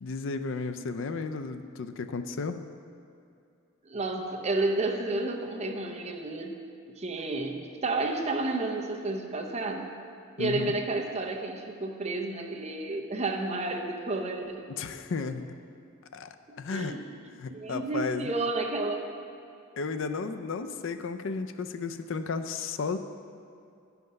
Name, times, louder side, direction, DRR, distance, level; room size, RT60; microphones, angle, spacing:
voice 1, 0.0-2.6 10.4-10.7 14.8-15.6 16.1-17.0 17.3-18.3 19.8-23.0, left 4 dB, 65° left, 9 dB, 0.4 m, -33 dB
voice 2, 3.8-6.6 7.0-9.9 10.4-14.6 16.7-17.0 17.5-19.1, right 2 dB, 30° right, 2 dB, 0.7 m, -31 dB
10.5 x 5.8 x 5.2 m, 2.5 s
head